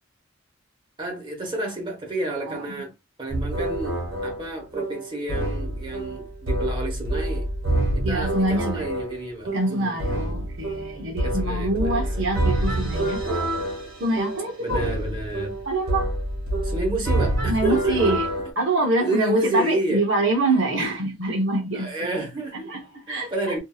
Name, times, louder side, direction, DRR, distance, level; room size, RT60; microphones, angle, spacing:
voice 1, 1.0-2.9 3.2-7.5 7.9-10.3 11.2-12.2 14.6-15.6 16.6-18.2 19.0-20.1 21.7-22.7 23.1-23.6, right 1 dB, 25° right, 1.1 m, -30 dB
sound 1, 3.3-18.5, right 1 dB, 90° right, 1.4 m, -27 dB
voice 2, 8.0-8.8 9.5-13.3 14.0-14.8 15.7-16.1 17.5-18.3 18.6-21.9 22.7-23.6, right 2 dB, 65° right, 0.8 m, -25 dB
2.7 x 2.6 x 2.3 m
head